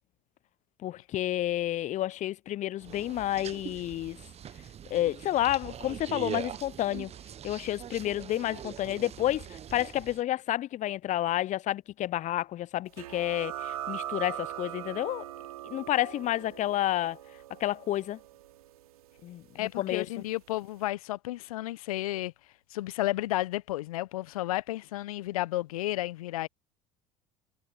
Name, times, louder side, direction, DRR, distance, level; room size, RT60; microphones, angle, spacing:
voice 1, 0.8-4.2 4.9-7.1 7.4-15.2 15.6-17.2 17.6-18.2 19.2-20.2, left 13 dB, 40° left, 0.7 m, -30 dB
sound 1, 2.8-10.2, right 9 dB, 35° right, 1.0 m, -42 dB
sound 2, 13.0-20.2, right 13 dB, 75° right, 3.5 m, -41 dB
voice 2, 19.5-22.3 22.7-26.5, left 16 dB, 70° left, 0.8 m, -32 dB
figure-of-eight pair, 65°, 19 cm